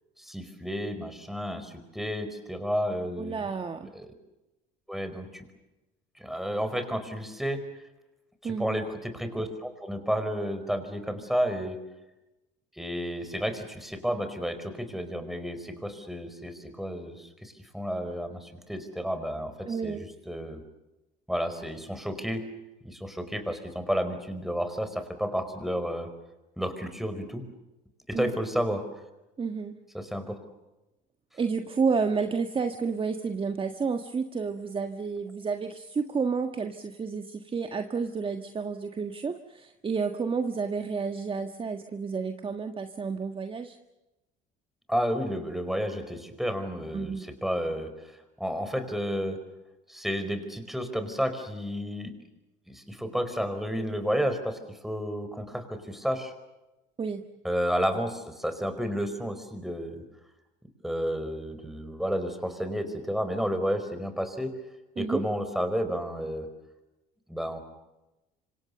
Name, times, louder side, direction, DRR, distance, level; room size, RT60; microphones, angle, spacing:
voice 1, 0.2-3.4 3.9-4.1 4.9-5.4 6.2-7.6 8.4-11.8 12.7-20.6 21.3-22.4 22.8-26.1 26.6-27.5 28.1-28.8 29.9-30.4 44.9-49.4 49.9-52.1 52.7-56.3 57.4-60.0 60.8-64.6 65.0-66.5 67.3-67.6, equal, ahead, 8 dB, 4.8 m, -31 dB
voice 2, 3.2-3.9 8.4-8.8 19.7-20.0 28.1-28.3 29.4-29.7 31.3-43.8 46.9-47.3 57.0-57.2 65.0-65.2, right 5 dB, 25° right, 6 dB, 1.5 m, -30 dB
27.0 x 25.5 x 6.9 m, 0.99 s
cardioid pair, 105°, 20 cm